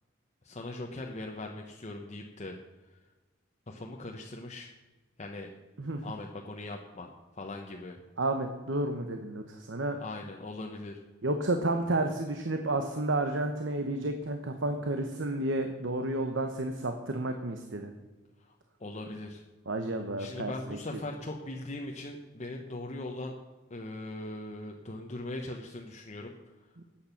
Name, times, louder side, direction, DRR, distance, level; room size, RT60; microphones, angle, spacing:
voice 1, 0.4-2.6 3.7-4.7 5.2-5.5 6.0-8.0 10.0-11.0 18.4-18.5 18.8-19.4 20.2-23.4 23.7-26.3, left 2 dB, 35° left, 1 dB, 1.0 m, -40 dB
voice 2, 8.2-10.0 11.2-17.9 19.7-20.5, right 2 dB, 70° right, 6 dB, 1.1 m, -31 dB
13.5 x 8.8 x 5.9 m, 1.2 s
head